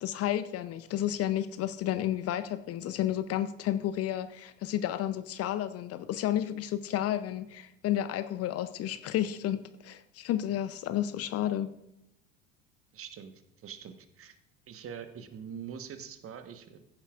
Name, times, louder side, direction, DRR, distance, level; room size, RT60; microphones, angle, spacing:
voice 1, 0.0-11.7, left 12 dB, 40° left, 13 dB, 0.6 m, -31 dB
voice 2, 12.9-14.3 14.7-16.8, right 7 dB, 35° right, 9 dB, 1.2 m, -44 dB
14.5 x 9.9 x 2.4 m, 0.84 s
figure-of-eight pair, 70°, 38 cm